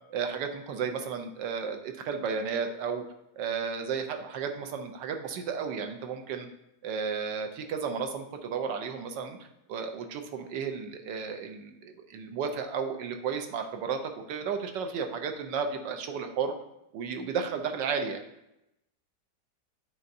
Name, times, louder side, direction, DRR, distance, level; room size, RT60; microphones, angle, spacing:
voice 1, 0.1-3.0 3.4-6.5 6.8-9.4 9.7-16.5 16.9-18.2, right 6 dB, 85° right, 5 dB, 1.4 m, -33 dB
9.4 x 4.2 x 2.6 m, 0.86 s
omnidirectional pair, 1.9 m